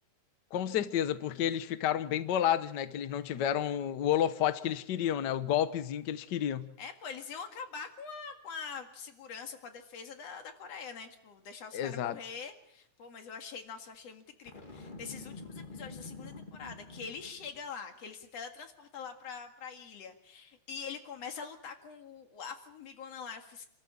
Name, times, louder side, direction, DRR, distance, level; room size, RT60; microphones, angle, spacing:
voice 1, 0.5-6.7 11.7-12.2, left 10 dB, 85° left, 12 dB, 0.9 m, -30 dB
voice 2, 6.8-23.7, left 6 dB, 60° left, 5 dB, 3.0 m, -44 dB
Boom, 14.5-17.7, left 3 dB, 20° left, 1.5 m, -47 dB
27.5 x 14.0 x 8.7 m, 0.78 s
omnidirectional pair, 3.4 m